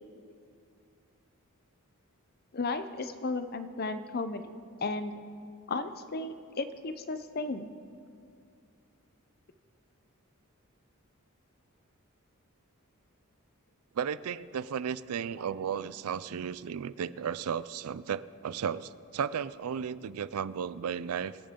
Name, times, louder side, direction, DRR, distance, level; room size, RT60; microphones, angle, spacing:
voice 1, 2.5-4.5 4.8-5.2 5.7-7.7, left 3 dB, 45° left, 10 dB, 0.6 m, -34 dB
voice 2, 13.9-21.4, right 7 dB, 85° right, 17 dB, 0.4 m, -34 dB
24.5 x 8.6 x 3.7 m, 2.3 s
head